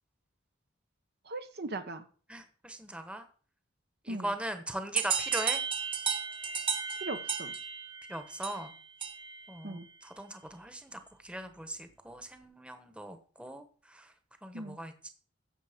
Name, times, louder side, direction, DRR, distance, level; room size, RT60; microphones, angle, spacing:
voice 1, 1.3-2.0 4.1-4.3 7.0-7.5 9.6-9.9 14.5-14.8, right 2 dB, 55° right, 9 dB, 1.1 m, -39 dB
voice 2, 2.3-3.2 4.0-5.6 8.1-8.7 9.5-13.6 13.9-14.1 14.4-15.1, right 1 dB, 5° right, 8 dB, 1.2 m, -40 dB
sound 1, 5.0-9.5, right 7 dB, 25° right, 1.5 m, -34 dB
15.5 x 7.2 x 5.2 m, 0.42 s
head